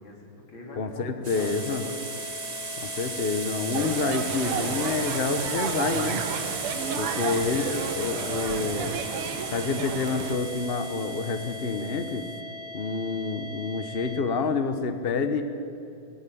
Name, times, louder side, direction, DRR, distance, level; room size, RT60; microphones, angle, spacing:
voice 1, 0.0-2.1 6.6-8.4 9.0-9.5, left 2 dB, 60° left, -1 dB, 4.2 m, -45 dB
voice 2, 0.8-1.8 2.8-6.2 7.0-9.0 9.5-12.2 12.7-15.4, left 4 dB, 40° left, 8 dB, 0.9 m, -28 dB
sound 1, 1.2-12.3, right 4 dB, 40° right, 0.5 m, -36 dB
sound 2, 1.4-14.2, left 3 dB, 10° right, 2.0 m, -40 dB
sound 3, 3.7-10.4, right 8 dB, 85° right, 1.9 m, -32 dB
20.0 x 14.0 x 9.3 m, 2.7 s
omnidirectional pair, 2.4 m